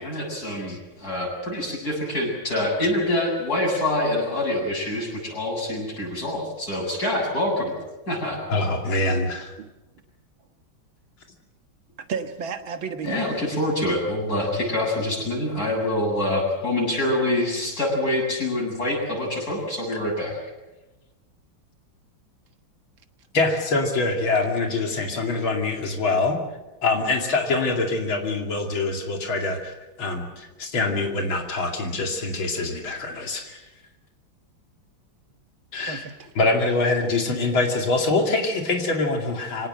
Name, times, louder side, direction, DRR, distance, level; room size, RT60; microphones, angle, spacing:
voice 1, 0.0-7.7 8.1-8.4 13.0-20.3, left 1 dB, 50° left, -1 dB, 8.5 m, -25 dB
voice 2, 8.5-9.5 23.3-26.4 26.8-33.6 35.7-36.0 36.4-39.7, left 3 dB, 85° left, 2 dB, 3.3 m, -24 dB
voice 3, 12.0-13.4 25.5-25.6 35.8-36.3, right 6 dB, 80° right, 7 dB, 2.3 m, -33 dB
25.5 x 18.0 x 7.9 m, 1.0 s
omnidirectional pair, 2.2 m